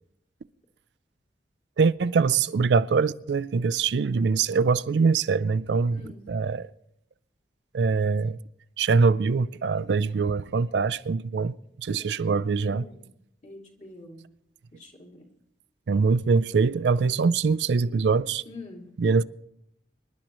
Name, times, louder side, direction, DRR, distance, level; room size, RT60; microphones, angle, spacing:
voice 1, 1.8-6.0 6.3-6.7 7.7-8.4 8.8-12.9 15.9-18.4 19.0-19.2, right 4 dB, 70° right, 0.4 m, -23 dB
voice 2, 12.0-13.0 13.4-14.2 14.7-15.2 18.5-18.9, left 2 dB, 45° left, 2.7 m, -45 dB
26.5 x 11.5 x 3.0 m
head